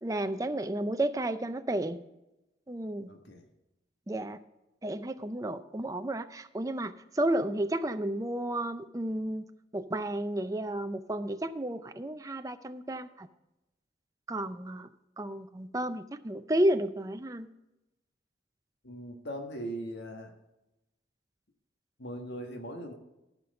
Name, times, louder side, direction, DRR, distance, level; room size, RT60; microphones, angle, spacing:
voice 1, 0.0-2.0 2.7-3.1 4.1-4.4 4.8-9.5 9.7-13.3 14.3-14.9 15.2-17.5, right 1 dB, 20° right, 9 dB, 0.5 m, -32 dB
voice 2, 3.1-3.4 18.8-20.3 22.0-22.9, right 1 dB, 80° left, 3 dB, 1.5 m, -40 dB
14.0 x 6.0 x 5.3 m, 0.95 s
head